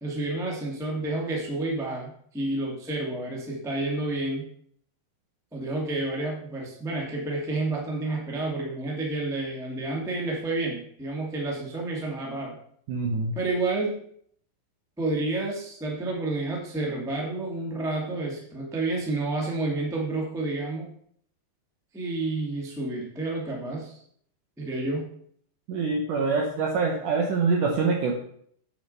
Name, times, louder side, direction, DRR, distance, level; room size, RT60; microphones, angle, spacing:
voice 1, 0.0-4.5 5.5-12.6 13.3-13.9 15.0-20.9 21.9-24.0 24.6-25.1, right 2 dB, ahead, -2 dB, 0.7 m, -30 dB
voice 2, 12.9-13.3 25.7-28.1, right 4 dB, 70° right, 1 dB, 1.9 m, -25 dB
8.8 x 6.5 x 5.7 m, 0.63 s
omnidirectional pair, 4.9 m